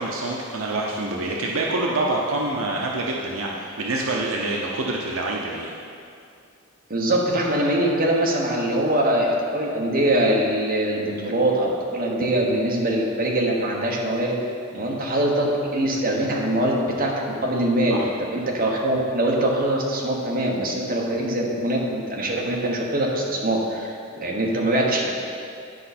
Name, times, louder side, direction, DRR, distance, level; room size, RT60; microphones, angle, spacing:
voice 1, 0.0-5.7 17.9-18.1, right 2 dB, 75° right, -2 dB, 0.7 m, -26 dB
voice 2, 6.9-14.4 14.7-25.1, right 1 dB, 45° right, -2 dB, 1.2 m, -23 dB
10.5 x 5.4 x 4.3 m, 2.4 s
head